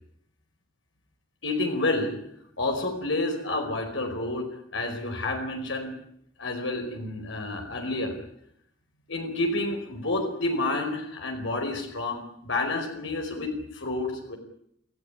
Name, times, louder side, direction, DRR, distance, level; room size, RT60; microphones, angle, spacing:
voice 1, 1.4-2.2 2.6-6.0 6.4-8.2 9.1-14.4, left 2 dB, 80° left, 3 dB, 4.8 m, -29 dB
27.5 x 16.0 x 9.9 m, 0.72 s
head